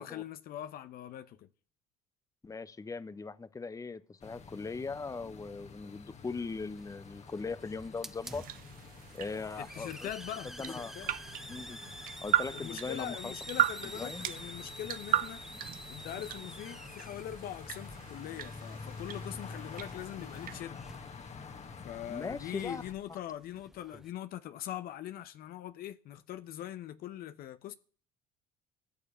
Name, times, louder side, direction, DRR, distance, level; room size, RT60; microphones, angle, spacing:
voice 1, 0.0-1.5 9.6-10.5 10.8-11.1 12.5-15.4 15.9-20.8 21.8-27.7, left 12 dB, 60° left, 0.9 m, -42 dB
voice 2, 2.4-8.5 9.1-10.1 10.4-11.1 11.5-11.8 12.2-13.3 13.9-14.2 22.1-22.8 23.1-23.2, left 4 dB, 20° left, 1.0 m, -40 dB
sound 1, 4.2-22.9, left 5 dB, 40° left, 1.8 m, -49 dB
Hiss, 6.2-24.1, equal, ahead, 0.8 m, -50 dB
sound 2, 8.2-20.6, right 12 dB, 55° right, 0.7 m, -37 dB
14.0 x 6.8 x 8.6 m
hypercardioid pair, 65°, 18 cm